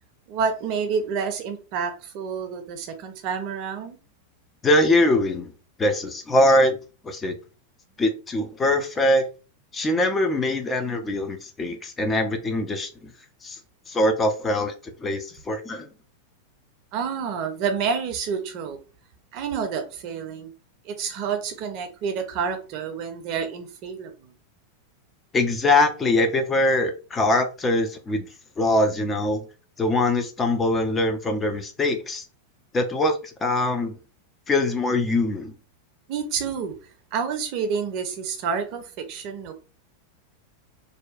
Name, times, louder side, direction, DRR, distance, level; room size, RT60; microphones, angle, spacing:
voice 1, 0.3-4.0 16.9-18.8 19.3-20.5 20.8-24.3 36.1-36.7 37.1-39.5, right 6 dB, 40° right, 0.5 m, -29 dB
voice 2, 4.6-5.5 5.8-6.8 7.0-7.3 8.0-9.2 9.7-13.1 13.4-13.6 13.9-15.9 25.3-28.2 28.6-29.5 29.8-32.2 32.7-34.0 34.5-35.5, left 1 dB, 20° left, 0.5 m, -22 dB
2.6 x 2.2 x 2.4 m
figure-of-eight pair, 90°, 0 cm